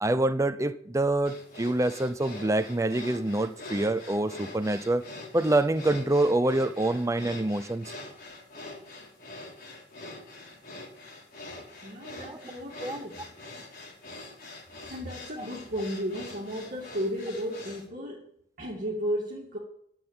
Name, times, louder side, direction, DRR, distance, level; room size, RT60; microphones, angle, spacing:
voice 1, 0.0-5.1 5.3-7.9 12.3-12.4 12.8-13.0, right 2 dB, 15° right, 0.5 m, -26 dB
sound 1, 1.3-17.9, left 2 dB, 50° left, 4.4 m, -44 dB
voice 2, 11.8-13.3 14.9-18.3 18.6-19.6, equal, 45° right, 2.3 m, -34 dB
11.5 x 7.8 x 8.9 m
head